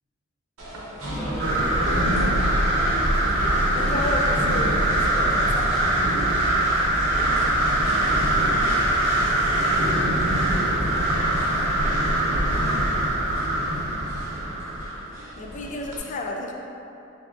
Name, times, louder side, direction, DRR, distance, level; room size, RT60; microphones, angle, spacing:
sound 1, 0.6-16.0, equal, 85° right, 0.8 m, -38 dB
voice 1, 1.0-1.7 7.0-8.4 11.2-13.5, equal, 5° left, -11 dB, 0.9 m, -39 dB
sound 2, 1.4-15.0, right 1 dB, 50° right, 1.5 m, -22 dB
voice 2, 3.7-5.8 15.4-16.5, left 2 dB, 35° left, 1 dB, 0.3 m, -31 dB
4.2 x 2.7 x 2.5 m, 2.8 s
head